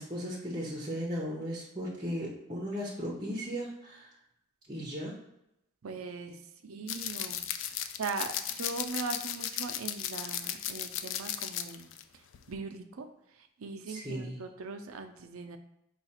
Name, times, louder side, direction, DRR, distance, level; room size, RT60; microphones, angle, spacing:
voice 1, 0.0-4.1 4.7-5.2 13.9-14.4, equal, 20° right, -4 dB, 0.7 m, -36 dB
voice 2, 5.8-13.1 13.3-15.6, right 4 dB, 90° right, 7 dB, 0.5 m, -40 dB
sound 1, 6.9-12.0 12.3-12.6, left 10 dB, 70° left, 0.3 m, -36 dB
4.7 x 2.4 x 4.3 m, 0.83 s
head